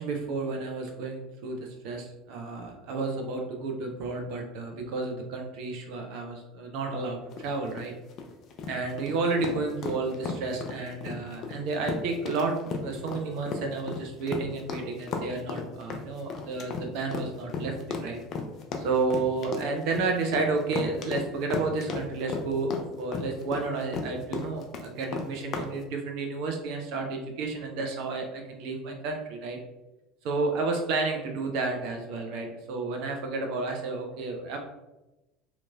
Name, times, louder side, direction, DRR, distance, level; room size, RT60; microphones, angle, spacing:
voice 1, 0.0-1.6 1.8-7.9 8.7-18.2 18.8-29.6 30.2-34.6, right 3 dB, 60° right, 2 dB, 0.5 m, -31 dB
sound 1, 7.3-25.7, left 4 dB, 45° left, 0.4 m, -34 dB
2.9 x 2.5 x 2.3 m, 0.99 s
figure-of-eight pair, 70°, 0 cm